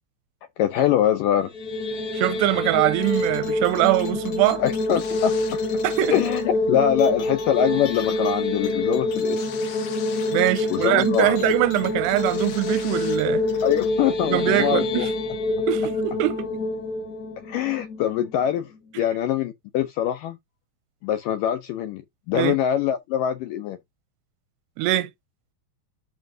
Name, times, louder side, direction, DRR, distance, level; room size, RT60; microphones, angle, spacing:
voice 1, 0.6-1.5 4.6-5.6 6.1-9.5 10.7-11.5 13.6-15.1 17.5-20.4 21.0-23.8, left 10 dB, 80° left, 1.9 m, -23 dB
sound 1, 1.4-18.5, left 2 dB, 35° left, 1.6 m, -26 dB
voice 2, 2.1-4.6 5.8-6.1 10.3-13.4 14.3-15.1 15.7-16.5 22.3-22.6 24.8-25.1, right 16 dB, 90° right, 2.8 m, -22 dB
sound 2, 3.0-13.9, left 7 dB, 50° left, 2.5 m, -43 dB
12.0 x 5.2 x 2.7 m
omnidirectional pair, 4.8 m